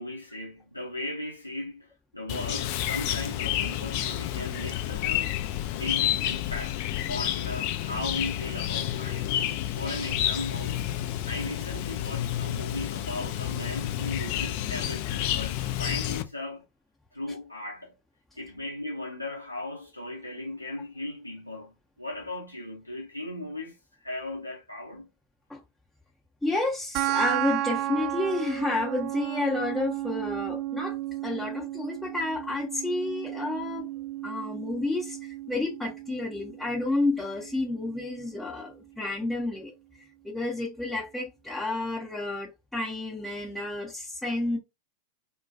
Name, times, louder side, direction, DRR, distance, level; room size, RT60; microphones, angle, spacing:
voice 1, 0.0-5.4 5.7-6.8 7.1-9.3 9.7-10.8 11.2-16.6 17.1-17.9 18.4-21.7 22.0-23.7 24.0-25.1, left 1 dB, 90° left, 0.7 m, -37 dB
Chirp tweet, 2.3-16.2, left 12 dB, 45° left, 0.3 m, -30 dB
voice 2, 26.4-31.0 31.2-33.9 34.2-39.7 40.2-44.6, left 2 dB, 5° left, 0.6 m, -30 dB
sound 1, 26.9-37.9, right 15 dB, 40° right, 0.3 m, -34 dB
2.2 x 2.1 x 2.6 m
figure-of-eight pair, 90°, 0 cm